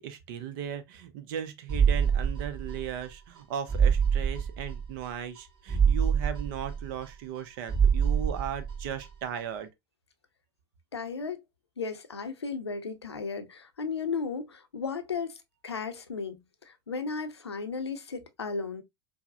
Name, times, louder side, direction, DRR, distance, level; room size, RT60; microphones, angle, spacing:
voice 1, 0.0-9.7, right 8 dB, 55° right, 0.6 m, -37 dB
sound 1, 1.7-3.1 3.4-3.5 3.7-5.1 5.4-5.5 5.7-7.4 7.7-9.1 9.4-9.5, right 7 dB, 35° right, 2.1 m, -26 dB
voice 2, 10.9-11.4 11.8-15.4 15.6-18.8, left 5 dB, 85° left, 0.6 m, -35 dB
4.7 x 2.1 x 2.3 m
figure-of-eight pair, 80°, 13 cm